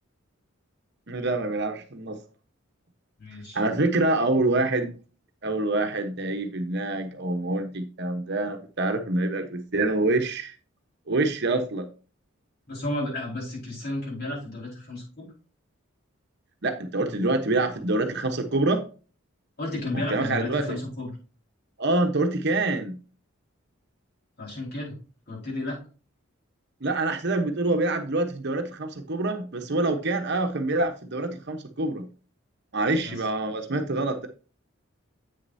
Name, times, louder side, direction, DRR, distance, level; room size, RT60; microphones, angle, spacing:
voice 1, 1.1-2.2 3.5-4.9 5.4-10.5 11.1-11.9 16.6-18.8 20.1-20.8 21.8-23.0 26.8-32.1 32.7-34.3, right 2 dB, 55° right, 1.0 m, -26 dB
voice 2, 3.2-3.6 12.7-15.3 19.6-21.1 24.4-24.9 25.3-25.8 33.0-33.2, left 1 dB, 50° left, 4.7 m, -32 dB
8.4 x 6.6 x 2.7 m
head